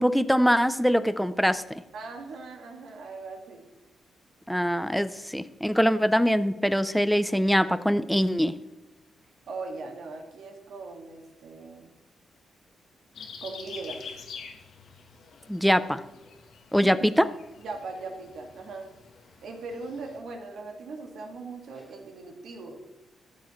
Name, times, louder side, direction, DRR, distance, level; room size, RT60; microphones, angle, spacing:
voice 1, 0.0-1.6 4.5-8.6 15.5-16.0 16.7-17.3, equal, ahead, 13 dB, 0.5 m, -23 dB
voice 2, 1.9-3.7 9.5-11.9 13.4-14.0 16.8-17.1 17.6-18.9 19.4-22.8, right 3 dB, 80° right, 2 dB, 1.9 m, -39 dB
sound 1, 13.1-20.2, left 5 dB, 75° left, 1.2 m, -46 dB
14.0 x 7.2 x 3.1 m, 1.1 s
cardioid pair, 100°, 0 cm